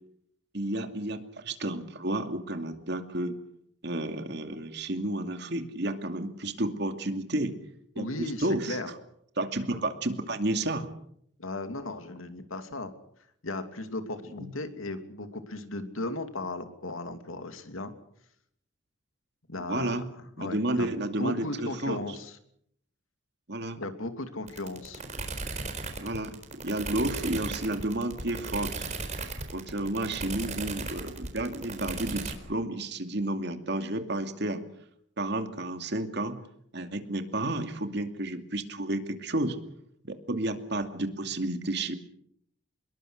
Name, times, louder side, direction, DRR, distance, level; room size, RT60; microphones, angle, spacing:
voice 1, 0.5-3.4 3.8-7.6 7.9-8.8 9.4-10.9 14.4-14.6 19.7-20.0 20.4-22.0 23.5-23.8 26.0-28.9 29.5-34.6 35.2-36.4 36.7-39.6 40.0-42.0, right 1 dB, 55° right, 7 dB, 2.6 m, -31 dB
voice 2, 8.0-8.9 11.4-12.9 13.4-17.9 19.5-20.0 20.4-20.9 21.2-22.4 23.8-25.0, left 2 dB, 90° left, 8 dB, 2.8 m, -36 dB
sound 1, 24.5-32.3, right 3 dB, 35° right, 4.2 m, -36 dB
25.5 x 21.5 x 6.6 m, 0.70 s
head